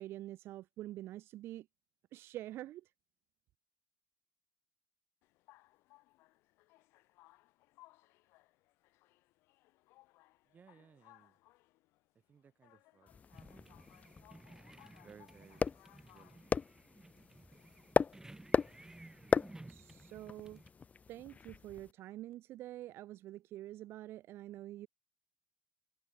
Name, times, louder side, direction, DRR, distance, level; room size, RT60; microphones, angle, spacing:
voice 1, 0.0-1.7 2.1-2.9 19.7-20.6 21.1-24.9, right 14 dB, 60° right, 1.9 m, -46 dB
sound 1, 5.2-20.1, left 20 dB, 65° left, 2.3 m, -66 dB
voice 2, 10.4-11.4 12.3-13.1 13.5-13.8 14.8-15.7 16.0-16.6, right 6 dB, 40° right, 5.1 m, -62 dB
sound 2, 13.1-21.9, left 5 dB, 30° left, 1.0 m, -38 dB
sound 3, 13.3-20.7, right 2 dB, 10° right, 3.5 m, -56 dB
hypercardioid pair, 55°, 5 cm